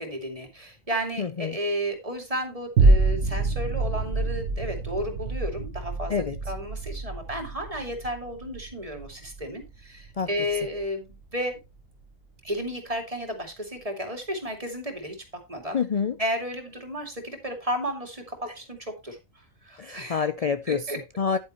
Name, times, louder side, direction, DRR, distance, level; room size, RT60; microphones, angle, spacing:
voice 1, 0.0-6.1 6.5-11.6 12.4-15.8 16.2-20.3 20.7-21.0, equal, 25° right, 2.5 m, -33 dB
voice 2, 1.2-1.6 6.1-6.4 10.2-10.3 15.7-16.1 18.5-18.6 19.8-20.8 21.2-21.4, left 6 dB, 60° left, 0.4 m, -27 dB
sound 1, 2.8-11.3 11.8-11.9, right 3 dB, 60° right, 1.3 m, -26 dB
10.0 x 9.2 x 3.0 m
omnidirectional pair, 1.4 m